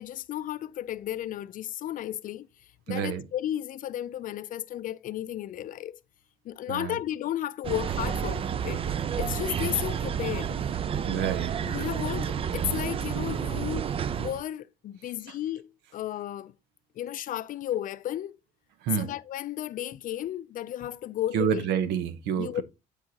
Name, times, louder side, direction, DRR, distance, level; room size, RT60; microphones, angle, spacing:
voice 1, 0.0-2.5 2.9-6.0 6.4-10.6 11.6-13.8 14.2-16.5 17.0-18.4 19.0-21.6 22.4-22.6, left 12 dB, 55° left, 0.4 m, -33 dB
voice 2, 2.9-3.2 6.7-7.0 11.0-11.6 15.3-15.4 18.8-19.1 21.3-22.6, right 8 dB, 85° right, 0.9 m, -28 dB
sound 1, 7.6-14.4, right 8 dB, 35° right, 0.4 m, -30 dB
10.0 x 4.8 x 2.8 m
cardioid pair, 110°, 17 cm